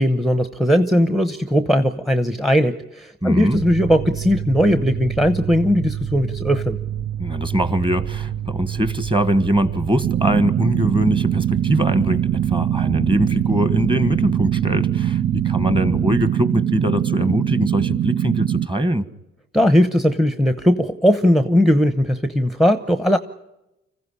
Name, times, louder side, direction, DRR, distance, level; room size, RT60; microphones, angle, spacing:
voice 1, 0.0-6.8 19.5-23.2, equal, ahead, 11 dB, 0.9 m, -18 dB
voice 2, 3.2-3.6 7.2-19.1, right 1 dB, 15° right, 13 dB, 1.5 m, -22 dB
Mechanical fan, 3.5-16.3, right 10 dB, 60° right, 1.3 m, -28 dB
sound 1, 10.0-18.7, right 10 dB, 45° right, 0.8 m, -22 dB
25.5 x 15.0 x 9.8 m, 0.93 s
cardioid pair, 90°, 30 cm